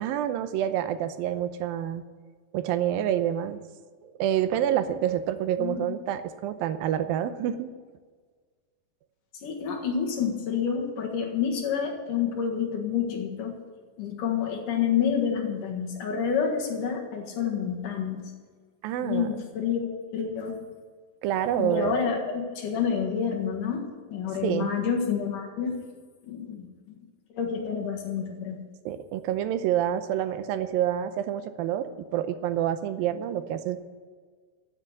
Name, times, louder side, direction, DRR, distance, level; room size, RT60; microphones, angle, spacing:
voice 1, 0.0-2.1 2.5-3.6 4.0-7.7 18.8-19.3 21.2-21.9 24.4-24.7 28.9-33.8, right 10 dB, 90° right, 11 dB, 2.6 m, -27 dB
voice 2, 9.4-13.6 14.0-18.3 19.0-20.6 21.6-25.8 26.3-27.0 27.3-28.6, left 7 dB, 70° left, 1 dB, 3.2 m, -28 dB
13.0 x 7.3 x 8.0 m, 1.5 s
omnidirectional pair, 4.0 m